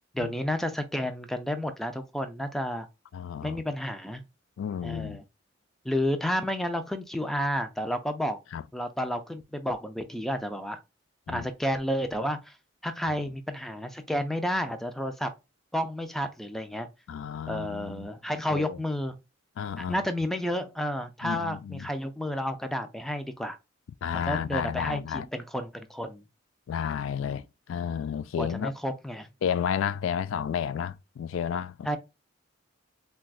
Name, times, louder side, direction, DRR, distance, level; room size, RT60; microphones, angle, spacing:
voice 1, 0.1-2.9 3.4-4.2 4.8-5.2 5.8-8.4 8.7-10.8 11.3-12.5 12.8-15.3 15.7-16.9 17.5-19.2 19.8-23.6 24.3-26.2 27.2-27.4 28.4-29.3 31.9-32.0, equal, ahead, 0.4 m, -31 dB
voice 2, 3.1-3.6 4.6-5.2 8.5-8.6 11.3-11.5 13.1-13.2 17.1-18.1 18.5-18.8 19.6-20.0 21.2-21.9 24.0-25.3 26.7-27.4 27.7-28.7 29.4-31.9, left 8 dB, 80° left, 0.3 m, -31 dB
5.9 x 2.3 x 2.3 m
head